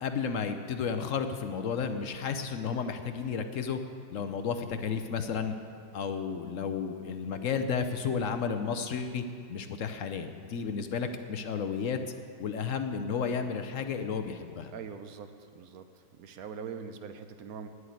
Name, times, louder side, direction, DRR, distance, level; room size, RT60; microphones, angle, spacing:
voice 1, 0.0-3.8 4.1-5.5 5.9-9.2 9.5-12.0 12.4-14.7, left 6 dB, 65° left, 8 dB, 0.8 m, -32 dB
voice 2, 14.7-15.3 15.6-15.8 16.2-17.7, right 6 dB, 65° right, 8 dB, 1.1 m, -42 dB
9.9 x 8.0 x 9.4 m, 2.4 s
omnidirectional pair, 1.9 m